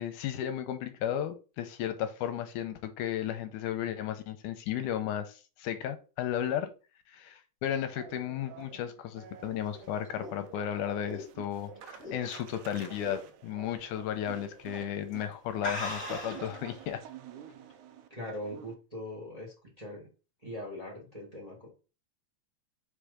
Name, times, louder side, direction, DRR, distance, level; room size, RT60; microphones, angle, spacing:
voice 1, 0.0-6.7 7.1-17.0, left 10 dB, 80° left, 2.1 m, -34 dB
sound 1, 8.0-18.7, right 8 dB, 75° right, 2.2 m, -49 dB
sound 2, 9.5-12.6 13.0-13.3 13.7-13.8 14.6-14.8 15.1-15.2 15.6-16.5, left 2 dB, 35° left, 2.5 m, -39 dB
voice 2, 18.1-20.1 20.4-21.7, left 1 dB, 15° right, 1.6 m, -41 dB
5.1 x 4.4 x 5.0 m
omnidirectional pair, 3.7 m